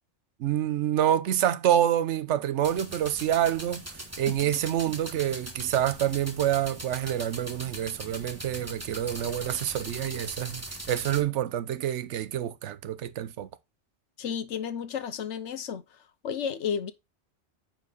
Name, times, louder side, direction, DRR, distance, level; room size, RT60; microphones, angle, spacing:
voice 1, 0.4-13.5, right 11 dB, 85° right, 1.0 m, -27 dB
sound 1, 2.6-11.2, right 1 dB, 15° right, 1.4 m, -41 dB
voice 2, 14.2-15.8 16.2-16.9, left 7 dB, 80° left, 1.2 m, -32 dB
9.5 x 4.7 x 4.0 m
omnidirectional pair, 1.2 m